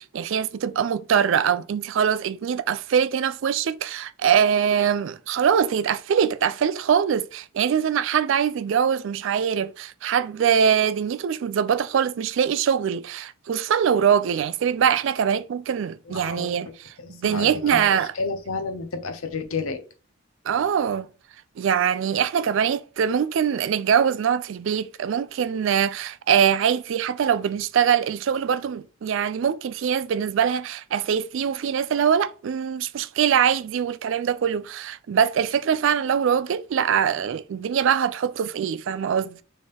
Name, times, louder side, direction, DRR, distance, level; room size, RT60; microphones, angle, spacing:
voice 1, 0.0-18.1 20.5-21.1 21.6-39.4, right 8 dB, 60° right, 0.3 m, -23 dB
voice 2, 16.1-16.7 17.0-19.8, left 4 dB, 75° left, 0.7 m, -31 dB
4.2 x 3.6 x 3.4 m
head